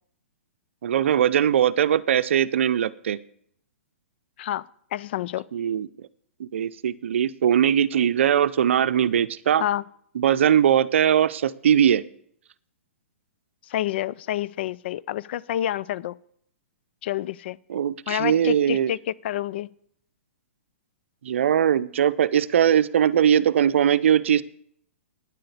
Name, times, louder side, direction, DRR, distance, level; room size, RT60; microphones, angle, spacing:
voice 1, 0.8-3.2 5.5-5.9 6.4-9.6 10.2-12.0 17.7-18.9 21.2-24.4, right 9 dB, 65° right, 0.6 m, -20 dB
voice 2, 4.9-5.4 9.6-9.8 13.7-16.2 17.0-17.6 18.1-19.7, left 12 dB, 50° left, 0.4 m, -28 dB
9.9 x 7.7 x 8.2 m
hypercardioid pair, 125°, 7 cm